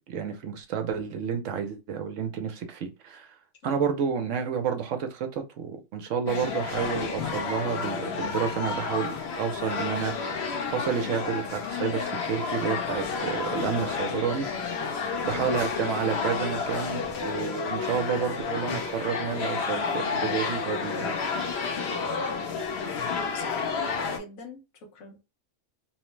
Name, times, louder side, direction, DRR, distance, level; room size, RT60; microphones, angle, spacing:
voice 1, 0.0-3.3 3.6-10.4 10.7-14.7 15.2-21.1, right 7 dB, 70° right, 0.9 m, -30 dB
voice 2, 3.6-4.0 14.7-15.5 22.3-22.6 23.0-25.2, equal, 80° left, 1.2 m, -44 dB
sound 1, 6.3-24.2, left 5 dB, 55° left, 0.9 m, -31 dB
3.1 x 2.0 x 3.1 m
omnidirectional pair, 1.4 m